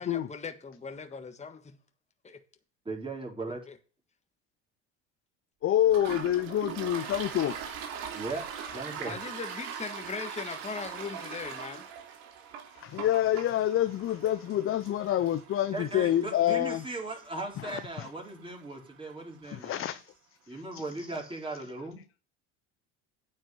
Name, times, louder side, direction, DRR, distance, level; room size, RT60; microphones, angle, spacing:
voice 1, 0.0-1.8 2.2-2.4 3.5-3.8 9.0-11.8, left 5 dB, 20° left, 1.5 m, -39 dB
voice 2, 2.8-3.6 8.1-8.4 8.7-9.2 15.7-20.0 20.5-22.0, right 2 dB, 15° right, 4.6 m, -38 dB
voice 3, 5.6-7.6 12.7-16.8 17.6-18.1 19.4-20.1 20.4-20.8, left 12 dB, 40° left, 0.6 m, -28 dB
Toilet flush, 5.8-19.2, right 7 dB, 80° right, 2.6 m, -42 dB
9.1 x 5.6 x 7.6 m
supercardioid pair, 95°, 33 cm